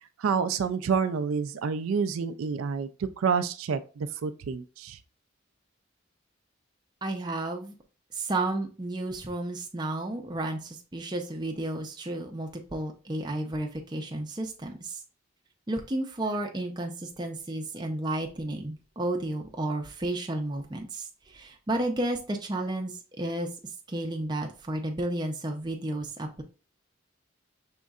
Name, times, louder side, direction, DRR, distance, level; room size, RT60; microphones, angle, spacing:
voice 1, 0.2-5.0, right 6 dB, 90° right, 10 dB, 0.4 m, -28 dB
voice 2, 7.0-7.7 8.1-15.0 15.7-23.5 23.9-26.4, right 2 dB, 20° right, 2 dB, 0.5 m, -32 dB
5.2 x 3.7 x 2.3 m, 0.34 s
head